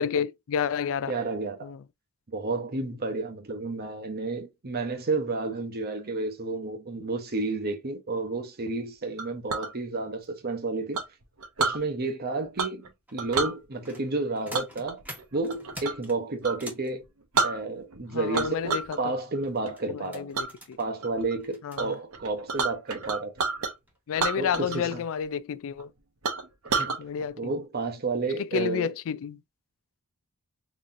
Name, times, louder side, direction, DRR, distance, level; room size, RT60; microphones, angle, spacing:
voice 1, 0.0-1.1 1.6-1.8 18.1-19.0 19.9-20.8 21.6-22.0 24.1-25.9 27.0-27.5 28.5-29.4, left 7 dB, 65° left, 0.3 m, -30 dB
voice 2, 1.1-1.7 2.3-11.0 11.6-12.8 13.1-15.0 15.3-17.0 17.4-20.3 20.8-23.5 24.4-25.0 26.8-27.0 27.4-28.9, right 3 dB, 45° right, 1.0 m, -31 dB
Chink clink, 9.2-9.7 10.9-11.8 12.6-12.9 13.2-13.5 14.5-16.1 16.4-16.6 17.0-17.1 17.3-18.0 18.3-19.0 19.4-19.7 20.3-20.5 21.0-21.4 21.8-21.9 22.1-23.7 24.1-24.9 25.2-25.3 25.8-25.9 26.2-27.0, right 4 dB, 70° right, 0.9 m, -29 dB
sound 1, 13.1-16.9 19.4-21.8 22.5-22.6 23.1-23.3 23.7-24.0 24.3-24.4, equal, 5° right, 1.1 m, -46 dB
3.9 x 3.0 x 2.6 m
head